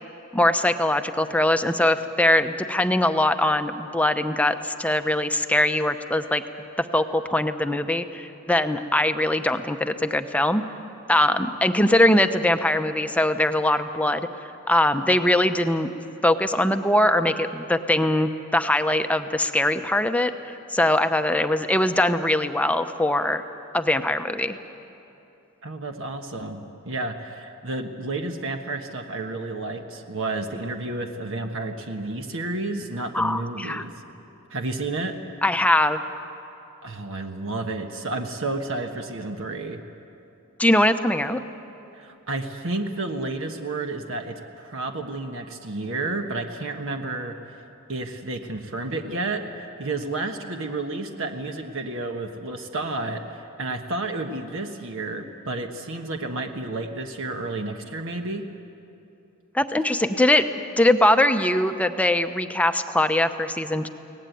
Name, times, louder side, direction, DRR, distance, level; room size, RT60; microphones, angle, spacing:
voice 1, 0.3-6.4 6.8-10.6 11.1-14.3 14.7-15.9 16.2-23.4 23.7-24.6 33.1-33.8 35.4-36.0 40.6-41.4 59.5-60.5 60.8-63.9, left 1 dB, 5° left, 8 dB, 0.8 m, -22 dB
voice 2, 25.6-33.9 34.5-35.1 36.8-39.8 41.9-47.3 47.9-58.4, right 2 dB, 60° right, 5 dB, 1.3 m, -31 dB
24.0 x 18.0 x 9.2 m, 2.9 s
head